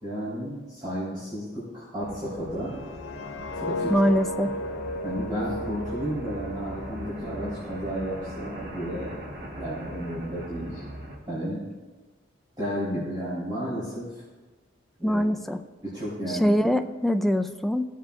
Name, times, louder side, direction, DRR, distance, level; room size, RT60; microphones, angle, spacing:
voice 1, 0.0-2.7 3.5-3.9 5.0-10.8 11.3-11.6 12.6-14.2 15.0-15.2 15.8-16.5, equal, 25° right, -11 dB, 3.5 m, -32 dB
sound 1, 2.0-11.2, equal, 50° right, 1.5 m, -40 dB
sound 2, 2.6-7.7 8.0-8.3, left 1 dB, 85° left, 0.5 m, -35 dB
voice 2, 3.9-4.5 15.0-15.6 16.3-17.9, equal, ahead, 7 dB, 0.3 m, -23 dB
17.0 x 7.4 x 2.4 m, 1.2 s
head